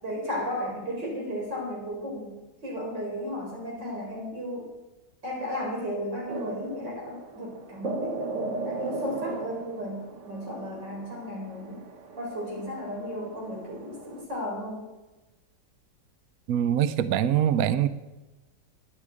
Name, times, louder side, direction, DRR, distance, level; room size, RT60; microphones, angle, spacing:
voice 1, 0.0-4.7 5.2-10.0 10.2-11.8 12.2-14.8, equal, 85° right, -2 dB, 5.0 m, -34 dB
sound 1, 6.3-14.2, right 3 dB, 50° right, 1.2 m, -38 dB
voice 2, 16.5-17.9, right 10 dB, 65° right, 14 dB, 0.9 m, -23 dB
10.0 x 8.5 x 9.6 m, 1.1 s
omnidirectional pair, 1.9 m